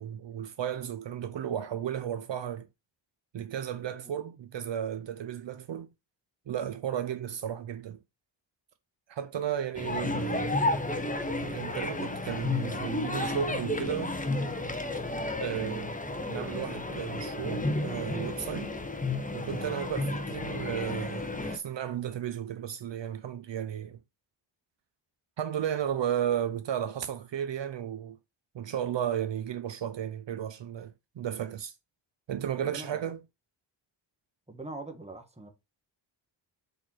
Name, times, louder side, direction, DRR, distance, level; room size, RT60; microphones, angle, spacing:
voice 1, 0.0-2.7 3.3-5.9 6.5-8.0 9.1-10.6 11.4-14.2 15.4-16.0 16.3-18.7 19.3-24.0 25.4-28.2 28.5-31.7 32.3-33.2, right 9 dB, 65° right, 0.7 m, -34 dB
sound 1, 9.7-21.6, left 2 dB, 15° left, 1.1 m, -32 dB
voice 2, 32.6-33.0 34.5-35.5, right 2 dB, 15° right, 1.5 m, -42 dB
6.7 x 4.5 x 4.4 m
wide cardioid pair, 115°, 47 cm